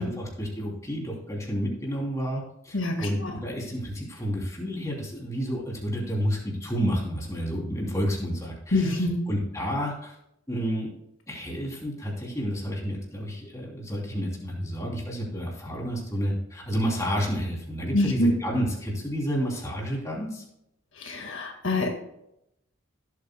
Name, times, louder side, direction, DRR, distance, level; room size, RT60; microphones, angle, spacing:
voice 1, 0.0-10.1 10.5-10.9 11.3-20.4, equal, 15° left, -2 dB, 3.0 m, -30 dB
voice 2, 2.7-3.3 8.7-9.2 17.9-18.3 21.0-21.9, left 1 dB, 65° left, 2 dB, 1.8 m, -25 dB
17.5 x 8.3 x 2.3 m, 0.79 s
head